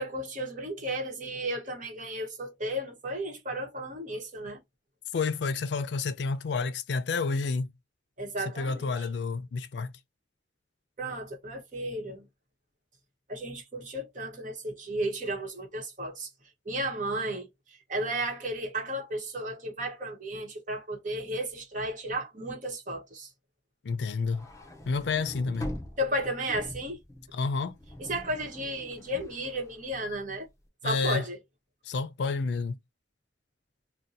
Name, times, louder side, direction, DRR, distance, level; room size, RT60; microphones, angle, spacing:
voice 1, 0.0-4.6 8.2-9.1 11.0-12.2 13.3-16.3 16.6-23.3 26.0-27.0 28.0-30.5 30.8-31.4, right 1 dB, 45° right, 1.1 m, -34 dB
voice 2, 5.1-7.7 8.4-9.9 23.8-24.5 24.9-25.7 27.3-27.8 30.8-31.2 31.8-32.8, left 4 dB, 75° left, 0.4 m, -30 dB
sound 1, 24.2-30.5, equal, 20° left, 0.6 m, -43 dB
2.7 x 2.2 x 3.8 m
head